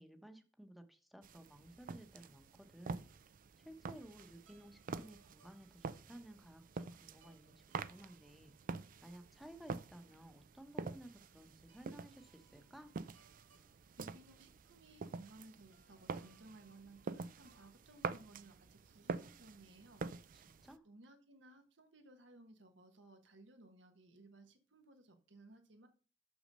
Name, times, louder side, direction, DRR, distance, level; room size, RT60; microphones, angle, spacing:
voice 1, 0.0-3.1 3.6-6.6 7.0-8.5 9.0-12.9 20.3-20.9, right 1 dB, ahead, 0.9 m, -56 dB
sound 1, 1.2-20.8, right 4 dB, 45° right, 0.4 m, -47 dB
sound 2, 4.4-18.4, right 3 dB, 90° right, 2.0 m, -74 dB
voice 2, 14.0-20.1 20.8-25.9, right 2 dB, 75° right, 1.3 m, -60 dB
6.4 x 6.1 x 5.4 m
head